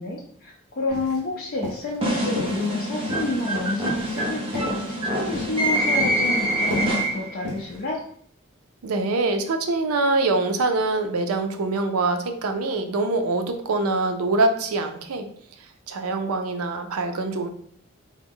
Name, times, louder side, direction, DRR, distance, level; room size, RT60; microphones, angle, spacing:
voice 1, 0.0-4.8 5.1-8.1, left 2 dB, 45° left, -3 dB, 0.5 m, -29 dB
sound 1, 0.9-1.3 1.6-2.0 2.3-2.8 3.1-6.3 6.6-7.9, left 1 dB, 50° right, 1.1 m, -35 dB
sound 2, 2.0-7.4, right 1 dB, 25° right, 0.6 m, -25 dB
voice 2, 8.8-15.3 15.9-17.5, right 3 dB, 90° right, 6 dB, 0.5 m, -24 dB
3.5 x 2.0 x 3.5 m, 0.62 s
head